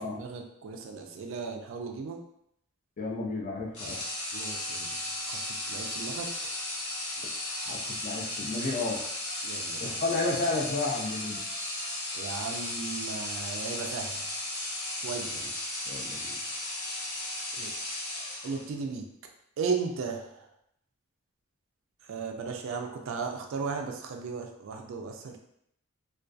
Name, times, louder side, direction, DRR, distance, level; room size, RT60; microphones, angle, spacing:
voice 1, 0.0-2.2 4.3-4.9 5.3-6.3 9.4-10.0 12.1-14.4 15.0-15.4 17.6-17.8 18.4-19.0 19.6-20.5 22.1-25.4, right 5 dB, 65° right, 3 dB, 0.3 m, -36 dB
voice 2, 3.0-4.0 7.6-9.0 9.8-11.4 15.9-16.2, left 3 dB, 35° left, -3 dB, 0.3 m, -32 dB
sound 1, 3.7-18.8, left 1 dB, 80° left, 0.7 m, -35 dB
2.5 x 2.3 x 2.3 m, 0.74 s
head